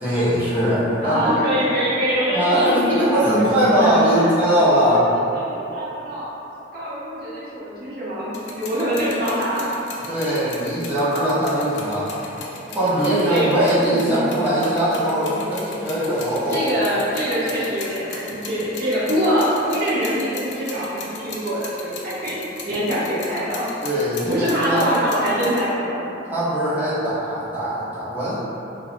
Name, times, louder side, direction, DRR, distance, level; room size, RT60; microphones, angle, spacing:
voice 1, 0.0-1.3 2.3-5.1 10.1-12.1 12.7-16.6 23.8-24.9 26.3-28.4, equal, 10° right, -12 dB, 0.6 m, -20 dB
voice 2, 1.0-3.4 3.8-3.9 4.2-4.3 5.3-6.3 6.7-9.7 12.9-13.8 16.5-23.7 24.3-26.0, equal, 55° right, -10 dB, 0.7 m, -24 dB
sound 1, 8.3-25.7, left 4 dB, 65° left, 0.4 m, -38 dB
2.9 x 2.1 x 2.4 m, 2.9 s
head